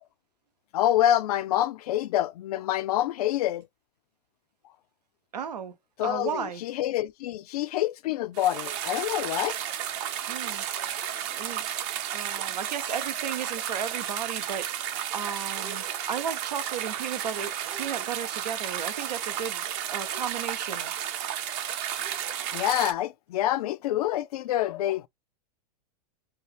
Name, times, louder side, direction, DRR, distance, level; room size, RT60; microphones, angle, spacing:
voice 1, 0.7-3.7 6.0-9.6 10.7-11.1 22.5-25.1, left 13 dB, 70° left, 0.5 m, -27 dB
voice 2, 5.3-5.7 6.0-6.6 10.3-10.6 11.3-11.7 12.1-14.8 15.1-19.6 19.9-20.9, right 8 dB, 90° right, 0.8 m, -34 dB
sound 1, 8.3-22.9, right 10 dB, 50° right, 0.7 m, -33 dB
2.8 x 2.3 x 3.2 m
hypercardioid pair, 115°, 20 cm